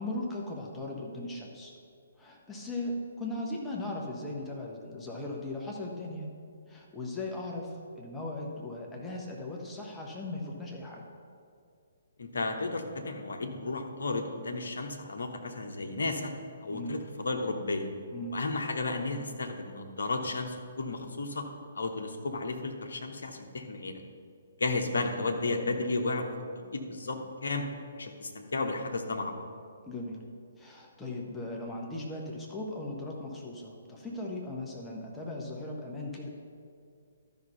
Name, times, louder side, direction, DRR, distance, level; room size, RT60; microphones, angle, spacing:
voice 1, 0.0-1.7 2.2-6.3 6.7-11.1 16.7-17.0 18.1-18.4 29.8-30.2 30.6-36.3, left 2 dB, 10° left, -2 dB, 1.2 m, -38 dB
voice 2, 12.2-16.3 16.6-17.9 18.3-21.4 21.7-24.0 24.6-26.3 26.7-27.7 28.0-29.4, left 3 dB, 60° left, 3 dB, 1.1 m, -33 dB
12.0 x 5.7 x 5.5 m, 2.3 s
figure-of-eight pair, 130°, 0 cm